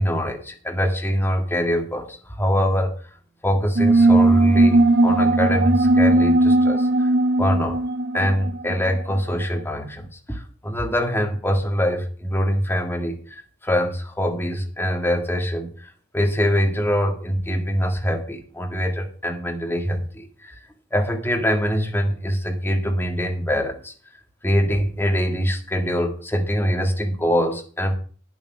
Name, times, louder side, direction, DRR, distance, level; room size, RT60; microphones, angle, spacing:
voice 1, 0.0-3.1 3.4-7.1 7.4-7.8 8.1-20.6 20.9-23.9 24.4-27.9, equal, 10° left, 2 dB, 1.9 m, -24 dB
sound 1, 3.8-9.0, right 2 dB, 55° right, 1.5 m, -17 dB
9.7 x 7.6 x 6.2 m, 0.42 s
head